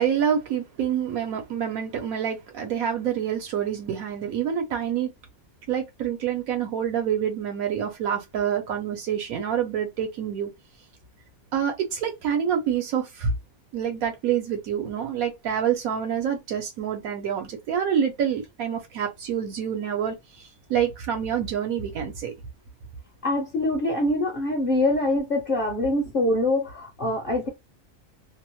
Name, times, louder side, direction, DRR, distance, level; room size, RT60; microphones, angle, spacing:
voice 1, 0.0-5.1 5.7-10.5 11.5-13.3 13.7-22.3, right 8 dB, 80° right, 1.1 m, -27 dB
voice 2, 23.2-27.5, left 1 dB, 50° left, 0.7 m, -24 dB
2.8 x 2.0 x 2.9 m
omnidirectional pair, 1.5 m